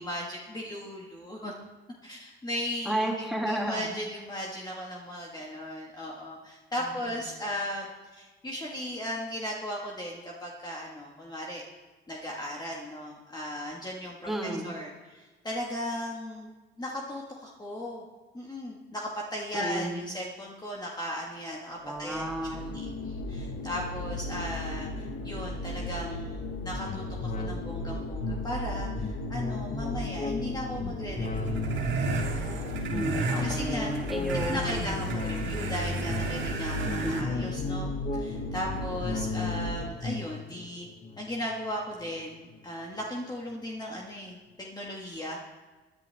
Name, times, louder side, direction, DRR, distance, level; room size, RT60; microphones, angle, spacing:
voice 1, 0.0-1.5 2.0-11.6 12.1-16.5 16.8-18.0 18.3-22.2 22.5-31.8 32.2-32.8 33.4-33.9 34.4-40.9 41.2-45.4, equal, 20° left, -2 dB, 1.7 m, -37 dB
voice 2, 2.9-3.9 14.3-14.7 19.5-20.0 21.8-22.7 32.9-34.9 37.0-37.5, right 1 dB, ahead, -1 dB, 2.5 m, -32 dB
sound 1, 21.9-39.9, left 1 dB, 70° left, 1.6 m, -36 dB
sound 2, 26.8-42.6 43.0-43.1, left 4 dB, 35° left, 1.2 m, -37 dB
sound 3, 31.1-37.2, right 4 dB, 70° right, 1.9 m, -34 dB
17.5 x 10.5 x 3.5 m, 1.3 s
cardioid pair, 90°, 20 cm